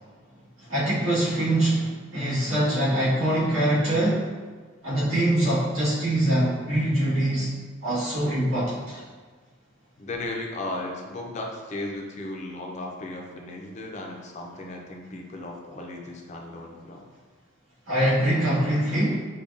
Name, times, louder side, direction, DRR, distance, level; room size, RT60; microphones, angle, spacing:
voice 1, 0.6-4.3 4.8-7.5 7.8-9.0 17.9-19.2, right 1 dB, 80° right, -9 dB, 1.4 m, -24 dB
voice 2, 10.0-17.1, left 2 dB, 35° left, 1 dB, 0.4 m, -36 dB
5.1 x 2.2 x 2.4 m, 1.4 s
head